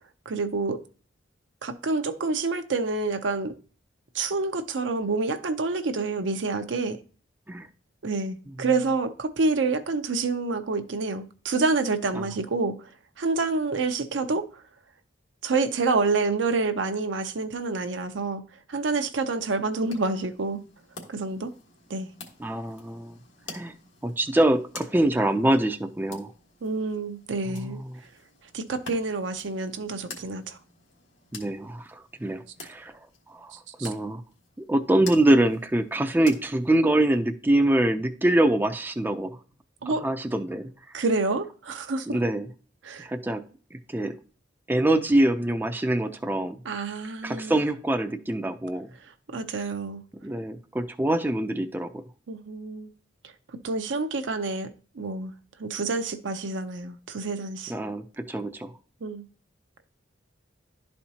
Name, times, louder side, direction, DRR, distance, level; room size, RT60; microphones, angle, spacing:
voice 1, 0.3-0.8 1.6-3.5 4.1-7.0 8.0-12.9 13.2-14.4 15.4-18.4 18.7-20.6 21.1-21.5 21.9-22.1 26.6-27.8 28.5-30.6 33.8-33.9 39.8-40.0 40.9-42.2 42.8-43.1 46.7-47.5 49.3-50.0 52.3-52.9 53.6-54.7 54.9-55.3 55.6-57.7 59.0-59.2, right 3 dB, 75° right, 0.6 m, -28 dB
sound 1, 19.7-37.1, left 4 dB, 80° left, 1.6 m, -48 dB
voice 2, 22.4-23.2 23.5-23.7 24.0-26.3 27.5-28.0 31.3-32.9 33.3-33.5 33.8-34.2 34.6-39.4 39.9-40.7 42.1-42.5 43.0-43.4 43.7-44.2 44.7-46.6 47.2-48.9 50.2-52.0 57.7-58.7, right 1 dB, 10° right, 0.4 m, -24 dB
11.5 x 4.3 x 2.8 m
head